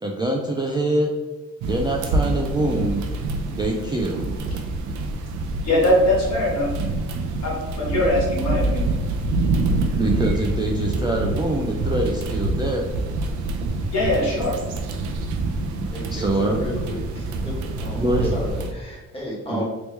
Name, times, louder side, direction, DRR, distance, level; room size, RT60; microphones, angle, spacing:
voice 1, 0.0-1.1 1.7-3.0 3.4-4.2 9.9-12.9 16.1-16.6 18.0-18.5 19.5-19.6, right 1 dB, 15° right, -1 dB, 0.3 m, -24 dB
sound 1, 1.6-18.7, right 2 dB, 75° right, 0.5 m, -26 dB
voice 2, 5.6-6.7 7.4-9.0 13.9-14.5, left 1 dB, 60° left, -3 dB, 1.5 m, -21 dB
voice 3, 15.9-18.0 18.3-19.6, equal, 20° left, -4 dB, 1.4 m, -33 dB
3.1 x 3.0 x 3.2 m, 1.2 s
cardioid pair, 90°, 30 cm